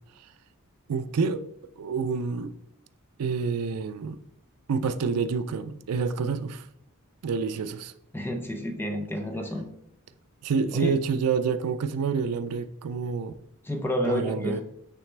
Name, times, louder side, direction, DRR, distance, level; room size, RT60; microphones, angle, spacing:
voice 1, 0.9-1.4 1.8-2.5 3.2-4.2 4.7-6.7 7.2-7.9 10.4-13.3 14.0-14.6, right 5 dB, 90° right, 0.4 m, -28 dB
voice 2, 8.1-9.7 10.7-10.9 13.6-14.6, equal, 10° left, 0.6 m, -29 dB
9.0 x 3.3 x 3.3 m
head